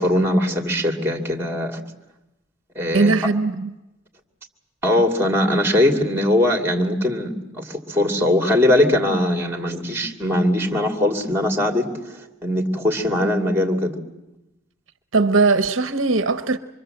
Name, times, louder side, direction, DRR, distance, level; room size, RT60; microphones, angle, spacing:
voice 1, 0.0-1.8 2.8-3.1 4.8-14.0, left 1 dB, 10° right, 2.5 m, -21 dB
voice 2, 2.9-3.7 15.1-16.6, right 3 dB, 65° right, 0.8 m, -19 dB
25.5 x 23.0 x 7.8 m
head